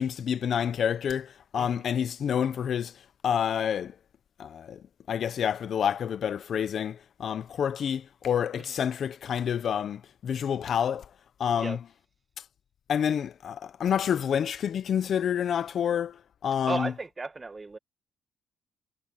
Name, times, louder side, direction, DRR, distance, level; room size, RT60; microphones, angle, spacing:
voice 1, 0.0-2.9 3.2-3.9 4.4-4.8 5.1-11.0 11.4-11.8 12.9-16.2 16.4-16.9, left 8 dB, 60° left, 0.8 m, -28 dB
voice 2, 16.7-17.8, right 3 dB, 25° right, 1.5 m, -35 dB
cardioid pair, 90°, 0 cm